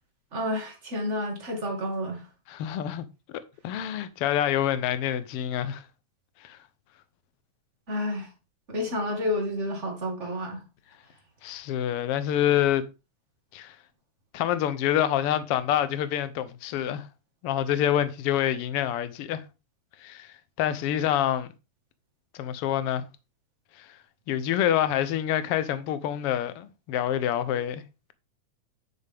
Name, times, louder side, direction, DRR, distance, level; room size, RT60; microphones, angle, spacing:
voice 1, 0.3-2.2 7.9-8.3 8.7-10.6, left 1 dB, 25° right, 2.3 m, -30 dB
voice 2, 2.5-3.0 3.6-5.8 6.4-6.6 11.4-12.8 13.5-13.8 14.3-17.1 17.4-19.4 20.0-20.3 20.6-21.5 22.3-23.0 23.8-24.0 24.3-27.8, left 11 dB, 70° left, 1.4 m, -26 dB
10.5 x 6.7 x 3.5 m
omnidirectional pair, 3.4 m